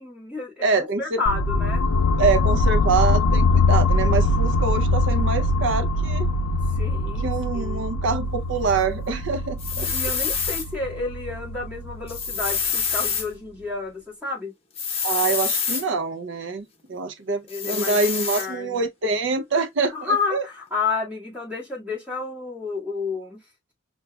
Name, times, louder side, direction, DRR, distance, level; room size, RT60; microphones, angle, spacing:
voice 1, 0.0-1.8 6.8-8.0 9.7-14.5 17.5-18.0 18.3-18.8 19.9-23.4, left 4 dB, 5° right, 1.8 m, -30 dB
voice 2, 0.6-1.2 2.2-6.3 7.2-9.9 15.0-20.5, right 4 dB, 60° right, 0.5 m, -25 dB
sound 1, 1.3-13.2, left 2 dB, 90° left, 0.4 m, -23 dB
sound 2, 9.6-10.7 12.1-13.3 14.8-15.8 17.5-18.5, left 6 dB, 30° left, 0.9 m, -26 dB
6.0 x 2.4 x 2.2 m
head